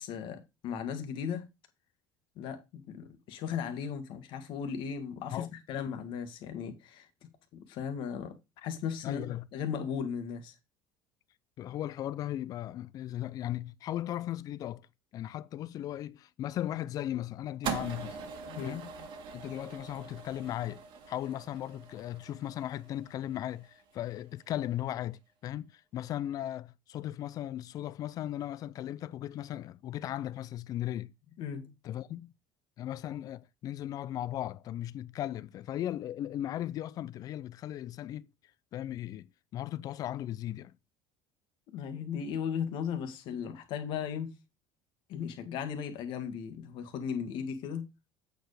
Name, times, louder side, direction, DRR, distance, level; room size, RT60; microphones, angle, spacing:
voice 1, 0.0-1.5 2.4-7.1 7.5-8.4 8.6-10.5 18.5-18.8 31.4-31.7 41.7-44.3 45.1-47.9, left 7 dB, 55° left, 1.6 m, -36 dB
voice 2, 9.0-9.5 11.6-14.9 15.1-18.2 18.6-18.9 19.3-20.8 21.1-31.1 31.8-32.3 32.8-38.3 38.7-39.3 39.5-40.7, left 12 dB, 40° left, 0.4 m, -37 dB
sound 1, 17.6-24.0, right 7 dB, 55° right, 1.5 m, -42 dB
8.1 x 4.6 x 4.9 m
cardioid pair, 155°, 10 cm